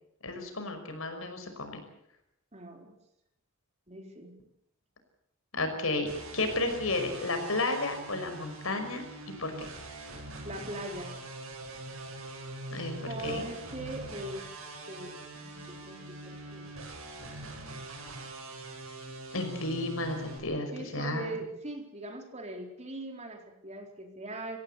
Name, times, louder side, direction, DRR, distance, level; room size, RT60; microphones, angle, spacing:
voice 1, 0.2-1.8 5.5-9.0 9.4-9.7 12.7-12.9 13.2-13.4 19.3-21.3, left 2 dB, 80° left, 6 dB, 5.6 m, -32 dB
voice 2, 2.5-2.9 3.9-4.3 10.4-11.1 13.1-14.5 14.9-16.6 20.7-24.6, right 1 dB, 35° right, 3 dB, 4.2 m, -41 dB
sound 1, 6.1-20.4, right 2 dB, 85° right, 7.5 m, -43 dB
25.0 x 17.0 x 8.3 m, 0.78 s
head